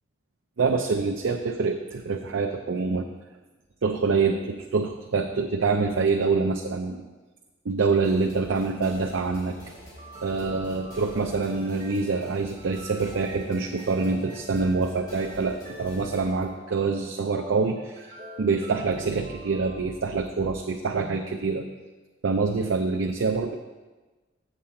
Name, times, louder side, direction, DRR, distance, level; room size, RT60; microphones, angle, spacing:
voice 1, 0.6-3.1 3.8-7.0 7.7-9.6 10.2-21.6 22.2-23.6, right 4 dB, 85° right, 2 dB, 0.5 m, -26 dB
sound 1, 8.0-16.4, equal, 20° left, 2.3 m, -47 dB
sound 2, 10.0-19.7, equal, 30° right, 1.6 m, -45 dB
7.6 x 7.4 x 4.3 m, 1.2 s
head